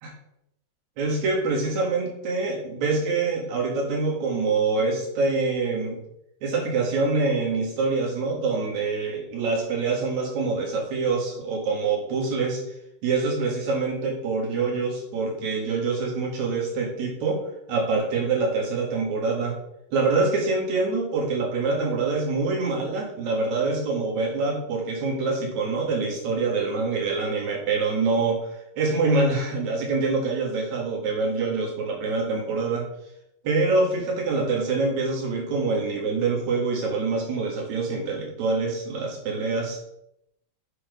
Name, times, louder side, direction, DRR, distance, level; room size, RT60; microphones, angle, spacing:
voice 1, 1.0-6.0 6.4-12.6 13.0-17.4 17.7-19.5 19.9-28.5 28.8-32.9 33.4-39.8, right 3 dB, 55° right, -1 dB, 3.1 m, -25 dB
7.2 x 5.9 x 5.2 m, 0.80 s
omnidirectional pair, 4.2 m